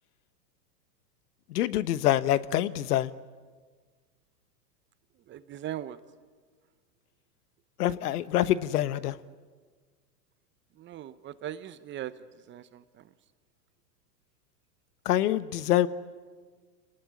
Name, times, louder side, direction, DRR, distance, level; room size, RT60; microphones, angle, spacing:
voice 1, 1.5-3.1 7.8-9.2 15.0-15.9, left 13 dB, 65° left, 15 dB, 1.2 m, -25 dB
voice 2, 5.3-6.0 10.8-12.1 12.5-13.1, right 12 dB, 25° right, 14 dB, 0.8 m, -39 dB
26.5 x 19.5 x 9.8 m, 1.5 s
hypercardioid pair, 120°, 49 cm